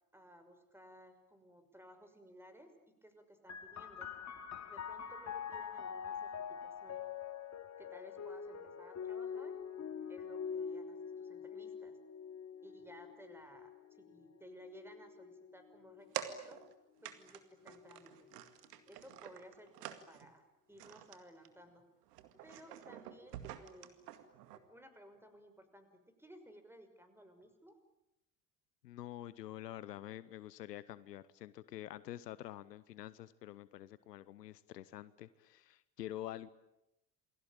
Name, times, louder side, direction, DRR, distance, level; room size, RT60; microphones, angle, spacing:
voice 1, 0.1-2.8 3.0-4.1 4.7-7.0 7.8-9.6 10.1-12.0 12.6-16.6 17.0-18.3 18.9-21.9 22.4-24.0 24.5-27.8, equal, 5° right, 9 dB, 5.9 m, -58 dB
sound 1, 3.5-16.7 17.6-18.4, left 7 dB, 35° left, 2.5 m, -45 dB
sound 2, 16.1-16.7 17.0-17.4 17.7-20.3 20.8-21.2 21.4-21.7 22.0-24.6, right 12 dB, 75° right, 2.2 m, -47 dB
voice 2, 28.8-36.5, left 13 dB, 80° left, 18 dB, 1.0 m, -47 dB
28.5 x 21.5 x 8.9 m, 0.91 s
figure-of-eight pair, 60°, 48 cm